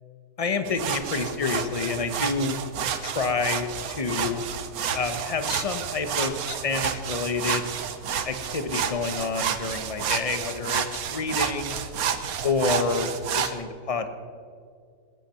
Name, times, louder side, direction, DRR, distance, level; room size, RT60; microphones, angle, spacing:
voice 1, 0.4-2.6 3.0-4.4 4.9-7.7 8.2-11.7 12.4-14.1, left 4 dB, 30° left, 9 dB, 0.8 m, -28 dB
sound 1, 0.7-13.5, right 8 dB, 70° right, 1.3 m, -30 dB
20.5 x 9.0 x 5.8 m, 2.2 s
omnidirectional pair, 1.7 m